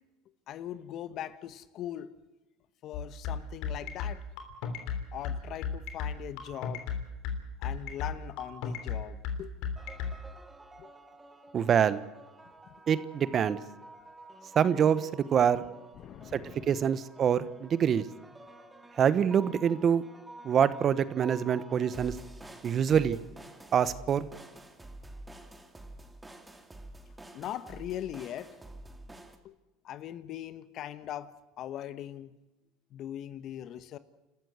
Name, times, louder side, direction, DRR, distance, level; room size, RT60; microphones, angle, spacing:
voice 1, 0.5-2.2 2.8-4.2 5.1-6.9 7.6-9.5 10.8-10.9 15.4-15.5 16.0-16.8 27.3-28.5 29.4-29.5 29.8-32.3 32.9-34.0, left 11 dB, 50° left, 14 dB, 1.2 m, -40 dB
sound 1, 2.9-10.1, left 6 dB, 65° left, 3.3 m, -33 dB
sound 2, 9.8-29.4, right 2 dB, 10° right, 2.3 m, -49 dB
voice 2, 11.5-12.0 12.9-13.6 14.5-15.0 15.3-15.6 16.3-16.4 16.7-18.0 19.0-20.0 20.4-22.1 22.6-23.2 23.7-24.3, right 8 dB, 40° right, 16 dB, 1.0 m, -25 dB
29.5 x 13.5 x 8.1 m, 1.0 s
supercardioid pair, 105°, 0 cm